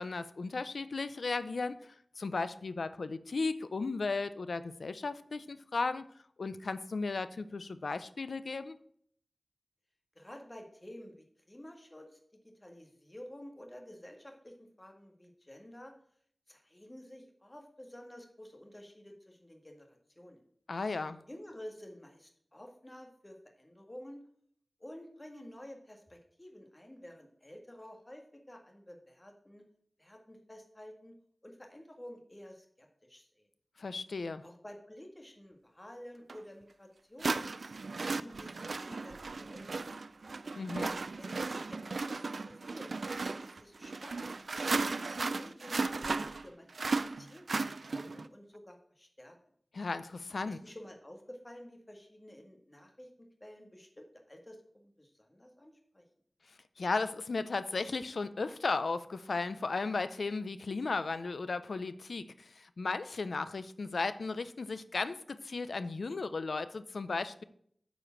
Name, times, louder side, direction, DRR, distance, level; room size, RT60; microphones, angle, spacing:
voice 1, 0.0-6.0 6.4-8.8 20.7-21.2 33.8-34.4 40.5-40.9 49.7-50.6 56.8-67.4, left 3 dB, 85° left, 13 dB, 0.6 m, -35 dB
voice 2, 10.1-12.2 12.4-15.9 16.5-20.4 21.3-24.3 24.8-29.6 30.0-31.2 31.4-33.5 34.4-37.5 38.0-39.6 41.2-42.9 43.4-49.4 50.5-56.0, left 1 dB, 25° left, 2 dB, 1.8 m, -51 dB
sound 1, 36.3-36.4 37.2-48.3, right 3 dB, 75° right, 0.4 m, -36 dB
9.0 x 5.1 x 7.2 m, 0.64 s
wide cardioid pair, 75°, 0 cm